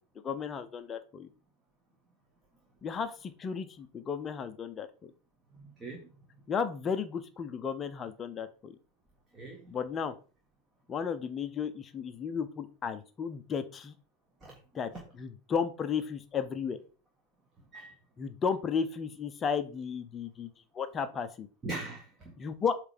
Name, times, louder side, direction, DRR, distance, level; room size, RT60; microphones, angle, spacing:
voice 1, 0.2-1.3 2.8-5.1 6.5-8.7 9.7-10.1 10.9-13.9 14.7-14.9 15.2-16.8 18.2-20.5 20.7-21.5 22.4-22.7, left 6 dB, 20° left, 0.7 m, -34 dB
voice 2, 5.5-6.1 9.3-9.7 14.4-14.5 14.9-15.0 17.7-17.9 21.6-22.3, right 2 dB, 15° right, 1.6 m, -41 dB
8.1 x 3.3 x 5.0 m
figure-of-eight pair, 90°, 0 cm